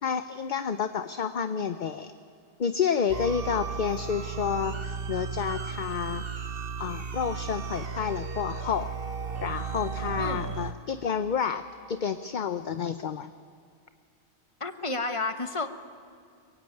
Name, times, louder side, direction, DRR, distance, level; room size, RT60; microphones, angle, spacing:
voice 1, 0.0-2.1 2.6-6.3 6.8-8.9 9.4-13.3, left 7 dB, 45° left, 10 dB, 0.8 m, -30 dB
sound 1, 3.1-10.7, right 6 dB, 55° right, 1.4 m, -35 dB
voice 2, 10.2-10.5 14.6-15.7, left 3 dB, 25° left, 8 dB, 1.4 m, -31 dB
24.0 x 22.5 x 9.3 m, 2.4 s
omnidirectional pair, 1.2 m